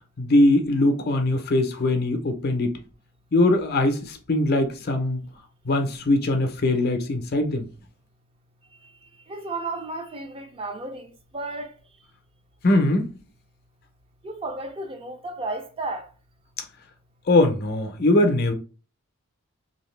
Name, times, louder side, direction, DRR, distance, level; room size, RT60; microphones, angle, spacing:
voice 1, 0.2-2.7 3.3-5.2 5.7-7.7 12.6-13.1 17.3-18.5, left 2 dB, 50° left, 0.6 m, -21 dB
voice 2, 9.3-11.7 14.2-16.1, right 2 dB, 25° right, 0.5 m, -33 dB
2.8 x 2.6 x 3.1 m
head